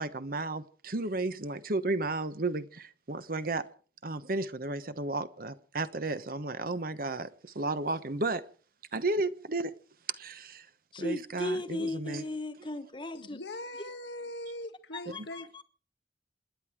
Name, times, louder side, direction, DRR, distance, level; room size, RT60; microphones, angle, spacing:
voice 1, 0.0-3.7 4.0-8.4 8.9-9.7 10.1-10.6 11.0-12.2, right 2 dB, 55° right, 1.2 m, -33 dB
voice 2, 10.9-13.4 14.9-15.6, left 2 dB, 30° left, 1.3 m, -36 dB
voice 3, 13.1-15.6, left 1 dB, 85° left, 1.8 m, -41 dB
28.0 x 10.5 x 4.8 m
head